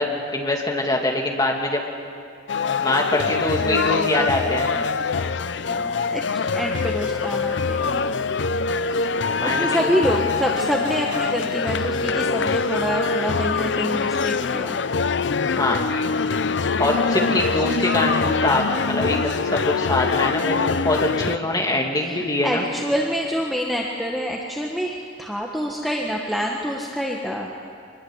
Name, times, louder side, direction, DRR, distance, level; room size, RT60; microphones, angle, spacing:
voice 1, 0.0-1.8 2.8-4.7 9.4-9.9 15.6-15.8 16.8-22.6, left 1 dB, 20° left, 0 dB, 2.5 m, -23 dB
sound 1, 2.5-21.4, left 4 dB, 60° left, 0.6 m, -24 dB
voice 2, 3.6-4.9 5.7-8.0 8.9-14.8 17.2-17.6 22.0-27.5, equal, ahead, -2 dB, 1.4 m, -27 dB
25.0 x 21.0 x 8.1 m, 2.3 s
head